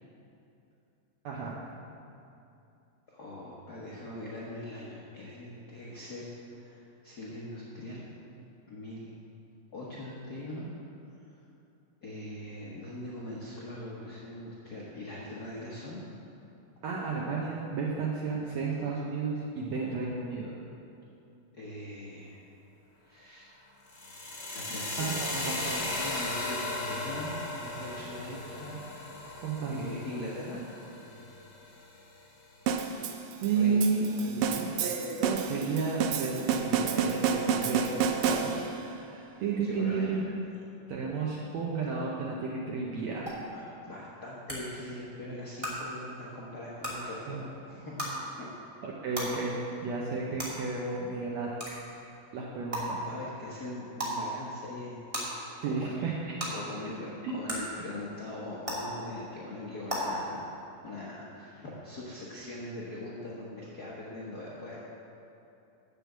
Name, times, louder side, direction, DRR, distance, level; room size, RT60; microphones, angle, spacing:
voice 1, 1.2-1.6 16.8-20.5 25.0-25.1 25.5-25.6 29.4-30.0 33.4-34.1 34.8-37.8 38.3-40.2 40.9-43.3 47.3-47.4 48.1-48.2 48.8-49.6 49.8-51.5 52.3-53.1 55.6-56.2 57.2-57.3, right 4 dB, 70° right, -3 dB, 1.8 m, -32 dB
voice 2, 3.1-8.0 8.7-9.1 9.7-10.7 11.1-11.3 12.0-16.0 21.5-22.4 23.0-23.5 24.5-28.8 29.2-29.3 29.7-30.6 33.5-33.7 34.2-34.7 37.2-37.7 39.6-40.2 43.5-48.1 48.4-48.5 53.1-55.1 55.7-55.9 56.5-60.4 60.8-64.8, left 1 dB, 75° left, -7 dB, 0.8 m, -41 dB
sound 1, 23.9-31.9, left 2 dB, 40° left, 0.9 m, -36 dB
sound 2, 32.7-38.9, right 6 dB, 90° right, 2.3 m, -30 dB
sound 3, 43.3-43.4 44.5-44.6 45.6-45.7 46.8-46.9 48.0-48.1 49.1-49.2 50.4-50.5 51.6-51.7 52.7-52.8 54.0-54.1 55.1-55.2 56.4-56.5 57.5-57.6 58.6-58.7 59.9-60.0, equal, 10° right, 1.7 m, -33 dB
9.1 x 6.9 x 7.3 m, 2.7 s
omnidirectional pair, 3.8 m